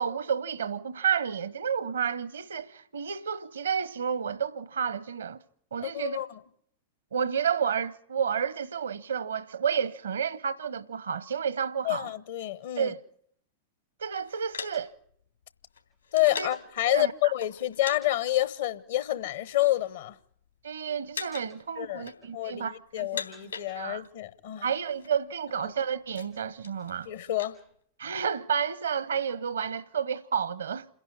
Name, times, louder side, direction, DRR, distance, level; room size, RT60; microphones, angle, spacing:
voice 1, 0.0-5.4 5.7-6.2 7.1-12.1 12.8-13.0 14.0-14.9 16.4-16.5 16.9-17.3 20.6-23.2 23.8-24.0 24.6-27.1 28.0-30.9, right 7 dB, 70° right, 0.8 m, -31 dB
voice 2, 5.8-6.3 11.8-12.9 16.1-20.2 21.8-24.7 25.6-25.7 27.1-27.6, left 15 dB, 60° left, 1.0 m, -28 dB
sound 1, 14.1-16.7 17.4-18.0 18.3-18.5 19.2-19.9 20.2-20.7 21.1-21.6 21.9-22.6 22.9-24.2 24.5-24.6 24.8-25.1 25.6-27.6, left 6 dB, 80° left, 3.6 m, -41 dB
28.0 x 11.0 x 9.5 m
figure-of-eight pair, 95°, 0 cm